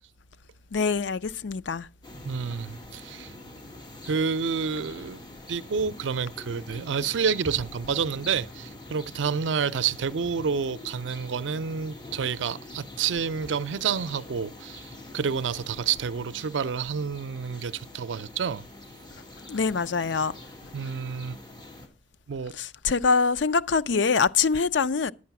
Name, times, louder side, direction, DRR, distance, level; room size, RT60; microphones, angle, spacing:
voice 1, 0.7-1.9 19.5-20.3 22.5-25.1, left 5 dB, 75° left, 0.5 m, -24 dB
sound 1, 2.0-21.9, left 1 dB, 25° left, 2.9 m, -45 dB
voice 2, 2.2-3.3 4.0-5.2 5.5-18.6 20.7-21.4 22.3-22.6, right 6 dB, 85° right, 0.5 m, -29 dB
11.0 x 8.6 x 5.9 m
head